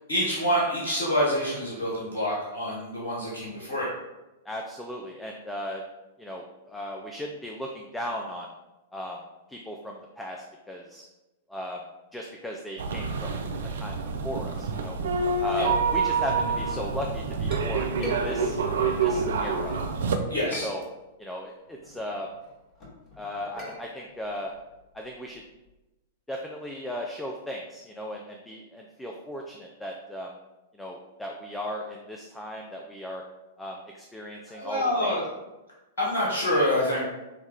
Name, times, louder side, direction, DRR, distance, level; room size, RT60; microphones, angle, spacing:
voice 1, 0.1-3.9 15.5-15.7 20.3-20.7 34.5-35.2 36.0-37.0, equal, 65° left, -6 dB, 1.3 m, -26 dB
voice 2, 4.5-5.8 6.2-8.5 8.9-9.2 9.5-11.0 11.5-11.8 12.1-13.4 13.8-14.0 14.2-15.0 15.4-18.6 18.9-19.8 20.5-20.8 21.2-22.3 23.2-24.5 24.9-25.4 26.3-30.3 30.7-33.2 33.6-35.2, equal, 5° left, 0 dB, 0.4 m, -36 dB
sound 1, 12.8-20.2, right 4 dB, 60° right, 0.4 m, -27 dB
Chink clink, 17.4-19.8 20.3-21.3 21.7-25.7, left 1 dB, 30° left, 1.3 m, -44 dB
6.4 x 2.3 x 3.4 m, 1.0 s
figure-of-eight pair, 100°, 0 cm